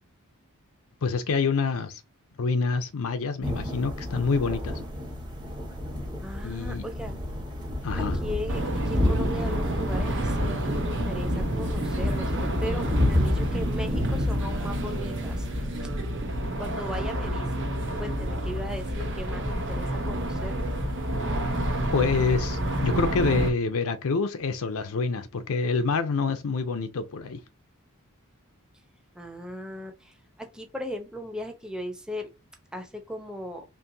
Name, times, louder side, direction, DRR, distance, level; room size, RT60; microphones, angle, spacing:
voice 1, 1.0-2.0 2.4-4.8 6.4-6.9 7.8-8.2 21.9-27.4, left 4 dB, 65° left, 0.5 m, -27 dB
sound 1, 3.4-15.6, left 1 dB, 20° right, 1.2 m, -30 dB
voice 2, 6.2-7.1 8.0-15.5 16.6-20.6 29.1-32.3 32.7-33.6, equal, 5° right, 0.7 m, -38 dB
sound 2, 8.5-23.5, right 1 dB, 60° right, 1.1 m, -29 dB
4.5 x 3.0 x 2.7 m
head